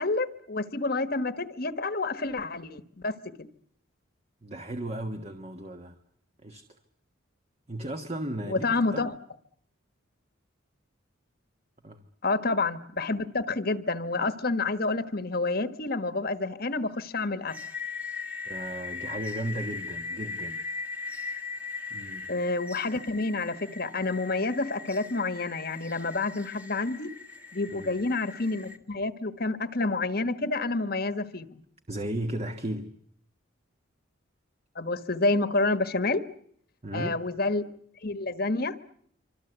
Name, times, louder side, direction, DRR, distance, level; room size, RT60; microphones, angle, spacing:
voice 1, 0.0-3.1 8.4-9.1 12.2-17.6 22.3-27.1 27.5-31.6 34.7-36.2 36.9-37.7 38.0-38.7, left 3 dB, 45° left, 1.4 m, -29 dB
voice 2, 4.4-6.0 6.4-6.7 7.7-9.0 11.8-12.0 18.4-20.6 21.9-22.3 27.7-28.0 31.9-32.9 36.8-37.2, right 1 dB, 30° right, 1.5 m, -35 dB
sound 1, 17.5-28.8, left 5 dB, 5° right, 1.5 m, -39 dB
27.0 x 25.5 x 8.1 m
head